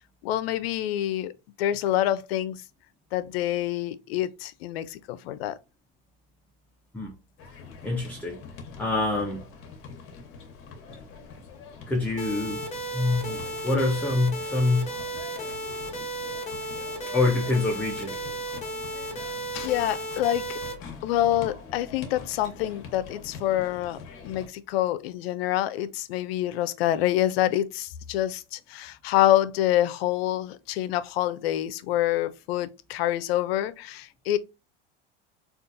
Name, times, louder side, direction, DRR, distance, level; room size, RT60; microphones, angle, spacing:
voice 1, 0.2-1.3 1.6-2.6 3.1-5.5 19.5-20.6 21.0-34.4, left 13 dB, 85° left, 0.5 m, -26 dB
sound 1, 7.4-24.5, left 5 dB, 45° left, 1.0 m, -44 dB
voice 2, 7.8-8.4 8.8-9.4 11.9-12.6 12.9-14.9 17.1-18.1, left 2 dB, 5° left, 0.5 m, -25 dB
sound 2, 12.2-20.7, right 2 dB, 20° left, 1.0 m, -34 dB
3.8 x 2.4 x 2.5 m
supercardioid pair, 135°, 30 cm